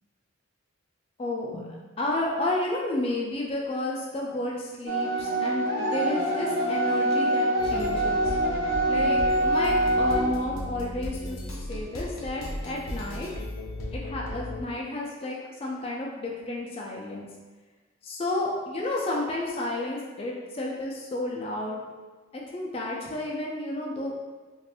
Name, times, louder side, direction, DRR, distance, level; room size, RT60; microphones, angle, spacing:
voice 1, 1.2-8.3 8.8-13.3 13.9-17.3 18.0-21.8 22.3-24.1, left 1 dB, 30° left, -2 dB, 0.4 m, -31 dB
sound 1, 4.9-10.3, right 1 dB, 65° right, 0.6 m, -25 dB
sound 2, 7.6-14.6, left 1 dB, 90° left, 0.6 m, -36 dB
2.5 x 2.4 x 3.4 m, 1.3 s
head